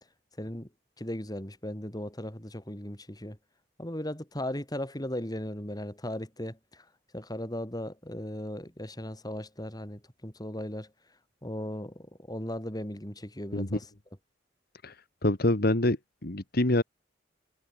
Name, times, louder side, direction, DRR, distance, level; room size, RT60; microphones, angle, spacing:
voice 1, 0.4-0.7 1.0-3.4 3.8-6.9 7.1-10.9 11.4-13.9, left 1 dB, 20° left, 5.4 m, -37 dB
voice 2, 15.2-16.8, left 1 dB, 55° left, 1.9 m, -26 dB
head